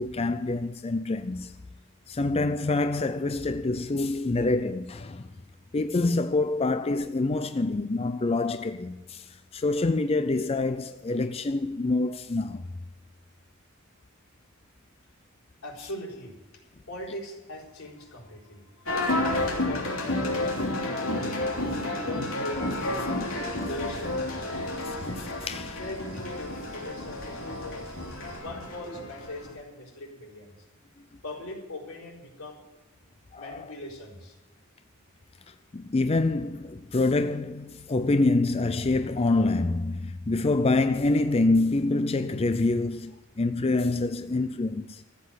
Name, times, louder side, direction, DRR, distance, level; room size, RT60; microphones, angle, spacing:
voice 1, 0.0-1.5 2.1-5.3 5.7-12.7 24.8-25.8 33.3-33.7 35.5-45.0, left 2 dB, 30° left, 0.4 m, -26 dB
voice 2, 15.6-16.3 16.9-21.4 21.8-23.4 23.7-28.0 28.4-30.5 31.2-32.6 33.4-34.4, left 1 dB, 85° left, 4.2 m, -40 dB
sound 1, 18.9-29.5, left 1 dB, 70° left, 3.3 m, -31 dB
sound 2, 22.5-28.4, right 1 dB, 70° right, 5.2 m, -47 dB
14.0 x 8.4 x 8.1 m
head